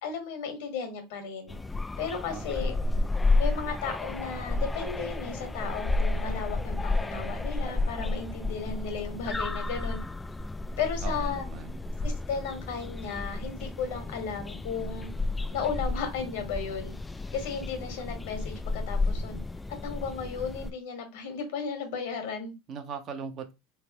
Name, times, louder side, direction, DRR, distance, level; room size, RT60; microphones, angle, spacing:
voice 1, 0.0-1.6 2.0-2.7 3.4-10.0 10.8-11.4 12.0-15.1 15.5-16.9 17.3-19.4 19.8-22.5, left 6 dB, 75° left, 1.5 m, -34 dB
sound 1, 1.5-20.7, left 2 dB, 10° left, 0.3 m, -31 dB
voice 2, 2.3-2.8 11.0-11.8 22.7-23.5, right 6 dB, 40° right, 0.8 m, -40 dB
3.9 x 3.4 x 2.9 m
supercardioid pair, 130°, 0 cm